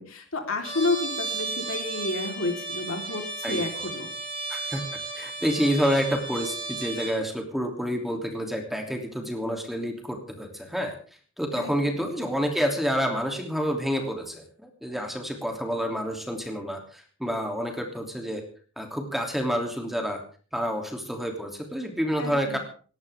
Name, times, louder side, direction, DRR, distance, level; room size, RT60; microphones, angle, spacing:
voice 1, 0.0-4.1 11.6-11.7 12.2-12.4 22.2-22.6, left 2 dB, 70° left, 3 dB, 4.0 m, -30 dB
Trumpet, 0.6-7.2, right 3 dB, 25° right, 7.2 m, -34 dB
voice 2, 3.4-3.9 4.5-4.8 5.1-10.9 11.4-18.4 18.8-20.2 20.5-22.6, equal, ahead, 2 dB, 3.0 m, -28 dB
19.0 x 18.0 x 3.6 m, 0.41 s
head